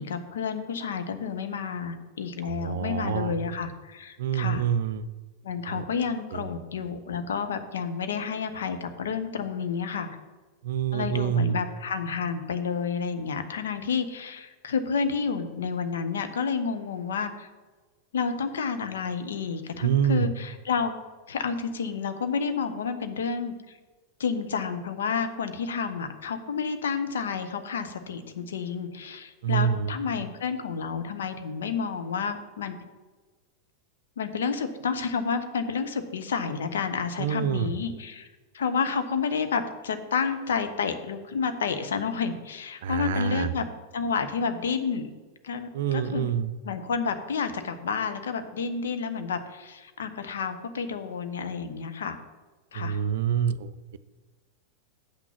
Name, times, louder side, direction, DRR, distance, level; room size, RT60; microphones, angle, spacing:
voice 1, 0.0-4.6 5.4-10.1 10.9-17.5 18.1-20.9 21.3-23.5 24.2-32.8 34.2-38.3 38.5-43.7 43.9-45.1 45.4-46.3 46.6-52.2 52.7-53.0, left 6 dB, 65° left, 8 dB, 0.9 m, -30 dB
voice 2, 2.4-3.3 4.2-5.1 5.7-6.0 6.3-6.5 10.6-11.6 19.8-20.3 29.4-29.9 37.2-37.7 42.8-43.5 45.7-46.5 52.7-54.0, right 8 dB, 55° right, 13 dB, 0.4 m, -27 dB
8.2 x 6.0 x 5.9 m, 1.3 s
figure-of-eight pair, 90°, 0 cm